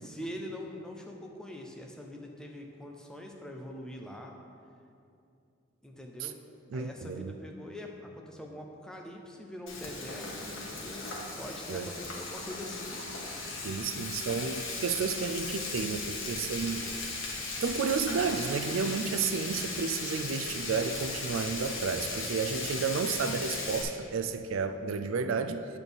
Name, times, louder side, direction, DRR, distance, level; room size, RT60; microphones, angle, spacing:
voice 1, 0.0-4.3 5.8-6.4 6.7-11.1 11.4-13.0, left 1 dB, 5° left, 1 dB, 0.6 m, -43 dB
voice 2, 6.7-7.4 11.7-11.9 13.6-16.9 17.6-25.7, right 5 dB, 80° right, 10 dB, 0.4 m, -32 dB
Frying (food), 9.7-23.8, left 3 dB, 80° left, 1.5 m, -37 dB
8.8 x 4.1 x 6.9 m, 2.5 s
head